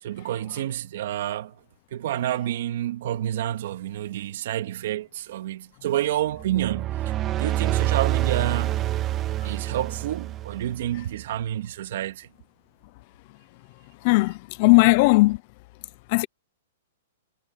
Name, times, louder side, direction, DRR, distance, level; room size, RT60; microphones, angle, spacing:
voice 1, 0.0-1.6 1.9-7.1 7.4-8.9 9.4-12.3, right 12 dB, 60° right, 2.4 m, -29 dB
sound 1, 6.3-11.0, right 14 dB, 25° right, 1.8 m, -27 dB
voice 2, 14.0-15.4 16.1-16.3, left 25 dB, 45° left, 0.7 m, -18 dB
hypercardioid pair, 145°, 0 cm